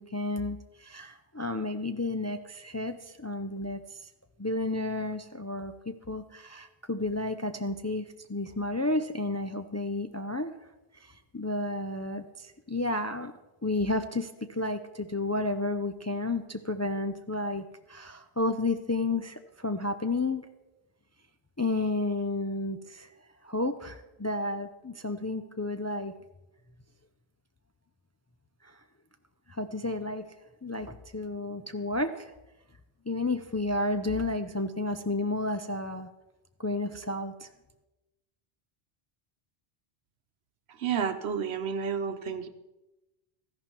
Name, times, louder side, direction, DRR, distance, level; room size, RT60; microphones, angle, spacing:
voice 1, 0.0-4.1 4.4-10.5 10.9-13.3 13.6-20.5 21.6-23.1 23.4-26.1 28.6-28.8 29.5-30.2 30.6-32.3 33.1-36.1 36.6-37.5, left 2 dB, 25° left, 8 dB, 0.3 m, -32 dB
voice 2, 40.8-42.5, right 7 dB, 85° right, 10 dB, 1.1 m, -30 dB
13.5 x 11.0 x 4.5 m, 1.0 s
omnidirectional pair, 1.1 m